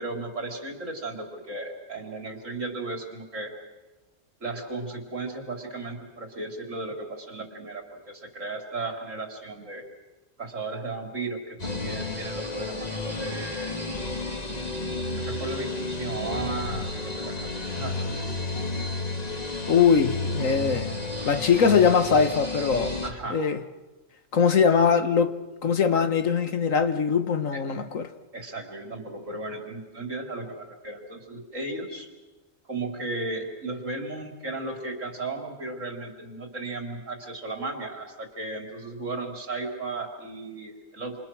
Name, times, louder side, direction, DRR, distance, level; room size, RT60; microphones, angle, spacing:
voice 1, 0.0-3.5 4.4-9.9 10.4-13.8 15.1-18.4 23.0-23.4 27.5-27.6 28.3-32.1 32.7-41.2, right 2 dB, 75° right, 4.0 m, -35 dB
sound 1, 11.6-23.1, left 2 dB, 30° left, 2.1 m, -32 dB
voice 2, 19.7-20.9 21.3-22.9 23.3-23.6 24.3-28.1, left 6 dB, 85° left, 1.9 m, -22 dB
28.5 x 27.0 x 6.3 m
omnidirectional pair, 1.3 m